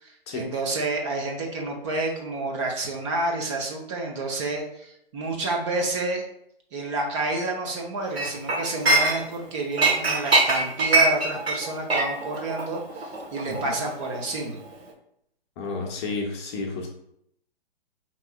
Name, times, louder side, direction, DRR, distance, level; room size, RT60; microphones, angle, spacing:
voice 1, 0.0-6.2 6.7-14.6, right 2 dB, 30° right, 0 dB, 0.6 m, -29 dB
Chink clink, 8.2-9.4 9.8-14.4 14.7-14.9, right 2 dB, 85° right, 1.1 m, -23 dB
voice 2, 15.6-16.9, left 3 dB, 25° left, 0 dB, 0.7 m, -31 dB
5.2 x 3.0 x 2.2 m, 0.73 s
figure-of-eight pair, 130°, 30 cm